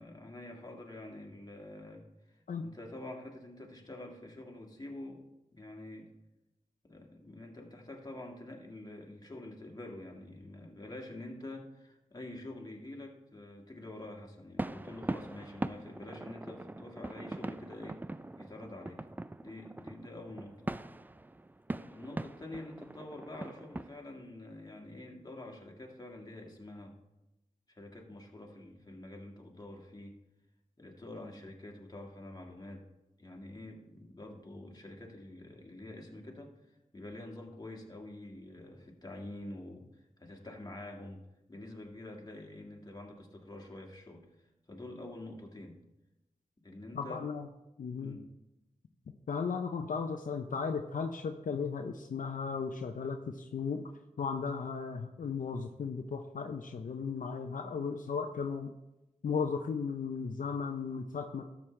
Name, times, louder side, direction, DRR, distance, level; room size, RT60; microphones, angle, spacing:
voice 1, 0.0-5.3 5.5-6.1 6.8-18.0 18.4-19.1 19.4-20.7 21.7-27.0 27.7-30.2 30.8-32.8 33.2-45.8 46.6-47.2 48.0-48.2, left 1 dB, 30° left, 1 dB, 1.9 m, -47 dB
sound 1, 14.6-24.0, right 2 dB, 15° right, 0.3 m, -41 dB
voice 2, 46.9-47.5 47.8-48.2 49.3-53.8 54.2-58.7 59.2-61.4, left 5 dB, 75° left, 5 dB, 0.6 m, -35 dB
12.5 x 7.2 x 3.2 m, 0.97 s
cardioid pair, 55°, 14 cm